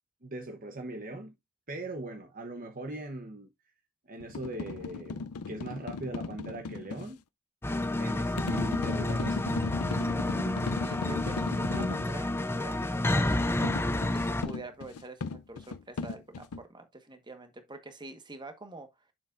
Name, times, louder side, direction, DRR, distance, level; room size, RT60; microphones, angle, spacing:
voice 1, 0.2-1.4 1.7-3.5 4.1-7.2 8.0-9.5, right 1 dB, 40° right, 1.0 m, -40 dB
sound 1, 4.2-7.1 8.4-12.1 13.6-16.6, left 4 dB, 85° left, 0.5 m, -36 dB
sound 2, 7.6-14.4, left 1 dB, 10° left, 0.5 m, -30 dB
voice 2, 10.8-13.7 14.1-18.9, right 2 dB, 20° right, 1.4 m, -46 dB
7.4 x 7.3 x 2.6 m
head